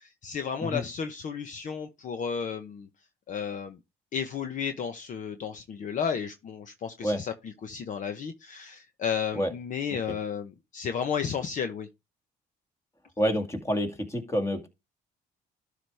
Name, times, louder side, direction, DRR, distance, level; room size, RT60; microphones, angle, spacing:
voice 1, 0.0-2.9 3.3-3.8 4.1-7.3 7.6-11.9, left 7 dB, 50° left, 1.0 m, -33 dB
voice 2, 13.2-14.7, equal, 15° left, 2.2 m, -28 dB
12.0 x 5.0 x 3.4 m
cardioid pair, 110°, 17 cm